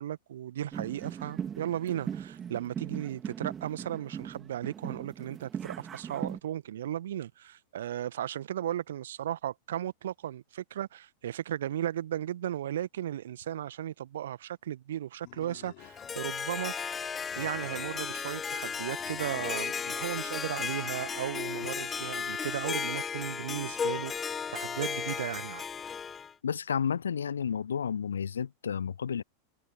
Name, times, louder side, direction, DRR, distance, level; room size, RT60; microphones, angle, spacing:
voice 1, 0.0-16.7 17.4-25.6, right 11 dB, 60° right, 1.7 m, -36 dB
sound 1, 0.7-6.4, right 8 dB, 20° right, 2.7 m, -39 dB
Animal, 15.2-16.4 17.1-18.2 19.0-20.0, left 40 dB or more, 45° left, 7.0 m, -53 dB
Harp, 15.8-26.3, left 6 dB, 20° left, 0.6 m, -35 dB
voice 2, 26.4-29.2, left 7 dB, 70° left, 0.4 m, -31 dB
figure-of-eight pair, 90°, 0 cm